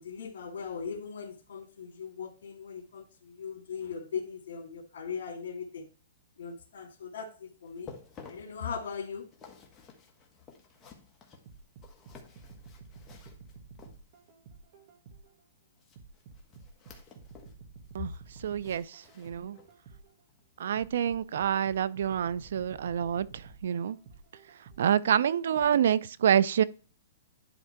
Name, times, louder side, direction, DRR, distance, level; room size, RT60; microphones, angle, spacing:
voice 1, 0.0-5.9 6.4-7.9 8.3-9.3, left 6 dB, 75° left, 2.3 m, -39 dB
sound 1, 7.7-14.4 15.8-17.6 17.9-19.9 20.3-20.4 21.0-21.1, left 5 dB, 15° left, 1.4 m, -54 dB
sound 2, 11.5-15.4 16.0-20.2 20.8-25.0 25.6-25.7, right 4 dB, 45° right, 1.7 m, -51 dB
voice 2, 18.4-19.6 20.6-24.0 24.8-26.6, right 9 dB, 70° right, 0.4 m, -27 dB
11.0 x 3.6 x 4.5 m
hypercardioid pair, 150°, 0 cm